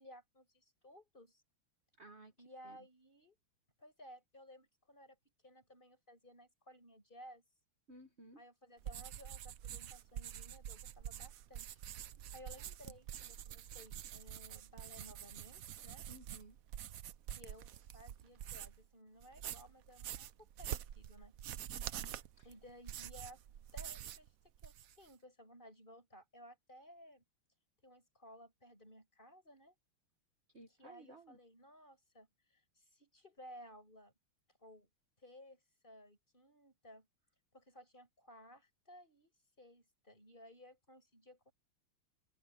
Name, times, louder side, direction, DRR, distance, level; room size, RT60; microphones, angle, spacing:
voice 1, 0.0-1.4 2.4-3.4 3.8-5.2 5.4-7.4 8.4-11.8 12.3-16.1 17.3-21.3 22.4-23.4 23.7-27.2 27.8-29.8 30.7-34.1 34.6-34.9 35.2-37.1 37.5-41.5, equal, 25° left, 7.1 m, -58 dB
voice 2, 2.0-2.3 2.6-2.8 7.9-8.4 16.1-16.6 21.7-22.5 30.5-31.4, right 2 dB, 35° right, 1.5 m, -57 dB
sound 1, 8.8-18.9 19.2-24.3 24.5-25.1, right 10 dB, 65° right, 0.8 m, -47 dB
omnidirectional pair, 2.2 m